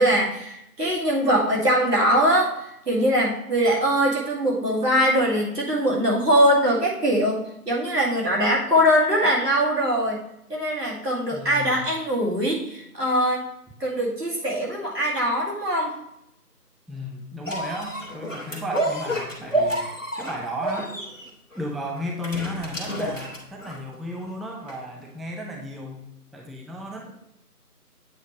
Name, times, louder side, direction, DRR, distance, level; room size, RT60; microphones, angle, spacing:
voice 1, 0.0-7.4 7.7-10.2 10.5-13.5 13.8-16.0, equal, 80° right, -4 dB, 2.4 m, -22 dB
voice 2, 11.3-11.9 16.9-20.9 21.5-26.0 26.3-27.1, left 1 dB, ahead, 0 dB, 0.5 m, -34 dB
sound 1, 17.4-23.9 24.7-24.8, right 1 dB, 55° left, 1.1 m, -29 dB
8.0 x 3.1 x 4.7 m, 0.80 s
figure-of-eight pair, 180°, 47 cm